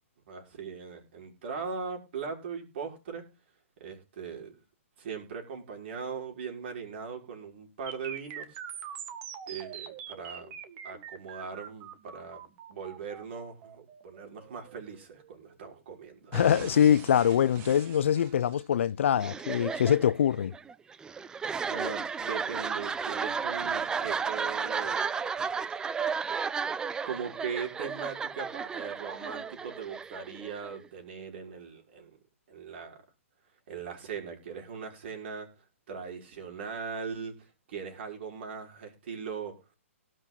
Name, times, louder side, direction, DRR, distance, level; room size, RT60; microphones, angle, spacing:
voice 1, 0.3-3.3 3.8-4.6 5.0-8.6 9.5-10.6 10.8-12.4 12.7-16.4 21.7-25.1 27.0-32.2 32.5-33.0 33.7-35.5 35.9-39.6, right 6 dB, 55° right, 6.0 m, -39 dB
sound 1, 7.9-15.8 16.3-18.9, right 8 dB, 30° right, 1.9 m, -44 dB
voice 2, 16.3-20.5, left 9 dB, 60° left, 0.6 m, -24 dB
sound 2, 19.2-30.8, right 6 dB, 10° right, 0.5 m, -33 dB
18.5 x 6.4 x 4.1 m
hypercardioid pair, 135°, 7 cm